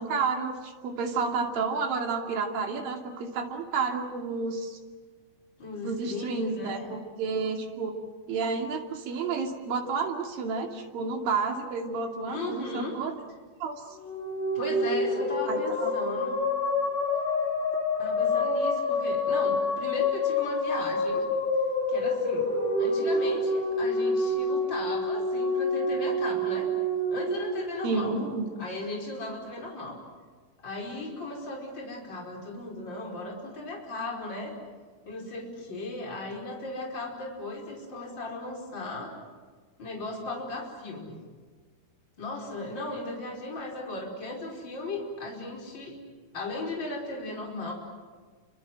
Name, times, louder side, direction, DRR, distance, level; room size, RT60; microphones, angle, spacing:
voice 1, 0.0-4.8 5.8-7.9 8.3-13.1 13.6-14.0 15.4-15.9 27.8-28.5, right 4 dB, 70° right, 3 dB, 4.3 m, -30 dB
voice 2, 5.6-6.9 12.3-13.0 14.5-16.4 18.0-21.3 21.9-22.5 22.8-26.7 27.1-28.2 28.6-30.0 30.6-34.6 35.1-39.1 39.8-41.2 42.2-46.0 46.3-47.7, left 2 dB, 30° left, 0 dB, 5.6 m, -36 dB
sound 1, 13.9-28.4, left 2 dB, 85° left, 7.1 m, -27 dB
29.5 x 25.5 x 7.7 m, 1.5 s
omnidirectional pair, 4.3 m